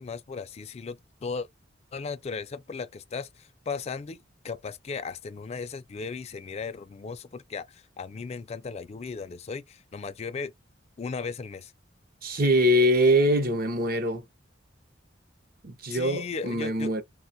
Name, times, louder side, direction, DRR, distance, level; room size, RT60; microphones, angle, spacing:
voice 1, 0.0-1.5 1.9-10.5 11.0-11.7 15.9-17.0, left 5 dB, 35° left, 0.3 m, -36 dB
voice 2, 12.2-14.2 15.6-17.0, equal, 50° right, 0.7 m, -23 dB
3.7 x 2.2 x 2.6 m
head